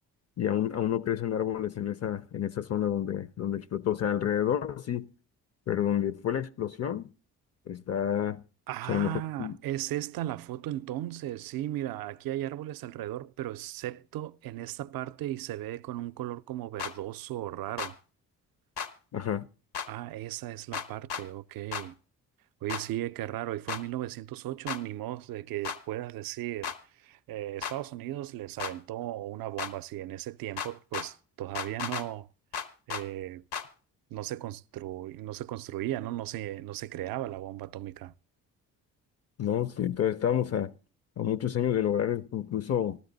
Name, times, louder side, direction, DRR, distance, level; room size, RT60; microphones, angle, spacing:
voice 1, 0.4-5.1 5.7-7.1 7.7-8.4 8.9-9.6 19.1-19.5 39.4-40.7 41.2-43.0, left 10 dB, 40° left, 0.5 m, -29 dB
voice 2, 8.7-18.0 19.9-22.0 22.6-32.3 32.9-33.4 34.1-38.1, right 14 dB, 65° right, 0.5 m, -36 dB
sound 1, 16.8-16.9 17.8-17.9 18.8-18.9 19.7-19.9 20.7-21.2 21.7-21.9 22.7-22.8 23.7-23.8 24.7-24.8 25.6-25.8 26.6-26.8 27.6-27.8 28.6-28.7 29.6-29.7 30.6-31.1 31.6-32.1 32.5-33.0 33.5-33.7, left 7 dB, 75° left, 1.1 m, -34 dB
14.0 x 13.0 x 3.9 m
supercardioid pair, 60°, 37 cm